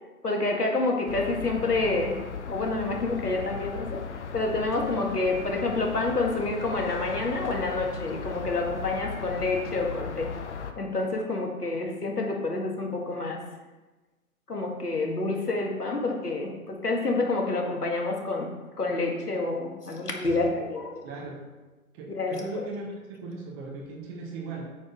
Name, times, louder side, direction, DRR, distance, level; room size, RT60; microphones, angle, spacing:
voice 1, 0.2-2.2 2.5-4.0 4.3-10.3 10.8-13.4 14.5-18.5 18.8-21.0 22.1-22.6, left 3 dB, 90° left, 0 dB, 2.1 m, -28 dB
sound 1, 1.1-10.7, left 5 dB, 50° left, 0.9 m, -37 dB
voice 2, 21.0-21.4 21.9-22.9 23.2-24.7, right 3 dB, 20° right, 0 dB, 1.1 m, -37 dB
8.4 x 4.8 x 5.4 m, 1.2 s
figure-of-eight pair, 140°, 45 cm